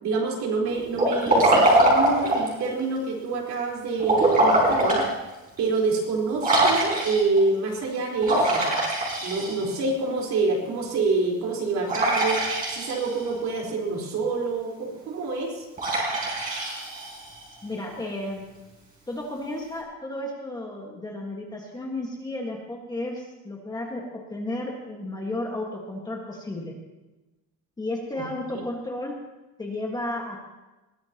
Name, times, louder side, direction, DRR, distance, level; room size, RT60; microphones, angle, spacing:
voice 1, 0.0-5.1 5.6-8.6 9.2-15.6 28.1-28.2 28.5-28.6, right 3 dB, 50° right, -2 dB, 4.3 m, -27 dB
Liquid, 0.9-2.6 4.0-5.1 5.6-5.7 6.4-7.4 8.2-9.8 11.9-13.2 15.8-17.4, right 1 dB, 25° right, 4.6 m, -22 dB
voice 2, 17.6-18.4 19.1-24.0 24.3-26.7 27.8-29.1 29.6-30.4, left 1 dB, 10° left, -1 dB, 1.6 m, -33 dB
21.0 x 16.5 x 3.0 m, 1.1 s
cardioid pair, 165°, 35 cm